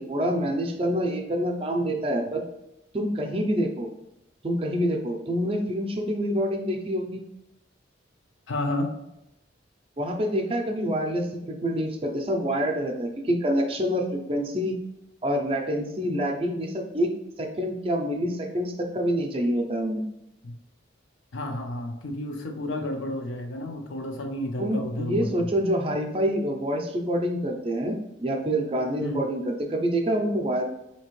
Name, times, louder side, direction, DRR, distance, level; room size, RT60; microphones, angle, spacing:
voice 1, 0.0-2.4 2.9-3.9 4.4-7.2 10.0-14.8 15.2-17.1 17.4-20.0 24.6-30.6, equal, 30° right, 3 dB, 0.4 m, -27 dB
voice 2, 8.5-8.9 20.4-20.6 21.3-25.6 29.0-29.3, left 1 dB, 85° left, 4 dB, 0.6 m, -31 dB
4.1 x 2.8 x 3.0 m, 0.88 s
head